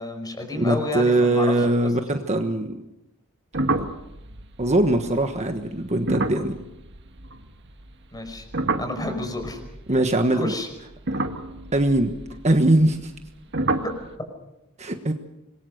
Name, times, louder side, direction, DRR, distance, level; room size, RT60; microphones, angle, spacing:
voice 1, 0.0-1.5 8.1-8.4 8.8-9.6 10.3-10.7 13.8-13.9, left 1 dB, 20° left, 6 dB, 5.4 m, -30 dB
voice 2, 0.6-2.8 3.7-3.8 4.6-6.6 9.9-10.5 11.7-12.1 12.4-13.1 14.8-15.1, right 1 dB, 30° right, 6 dB, 1.4 m, -21 dB
sound 1, 3.5-7.9 8.1-10.3 10.9-13.3 13.5-14.1, right 2 dB, 55° right, 1.7 m, -29 dB
26.0 x 22.0 x 6.6 m, 0.91 s
head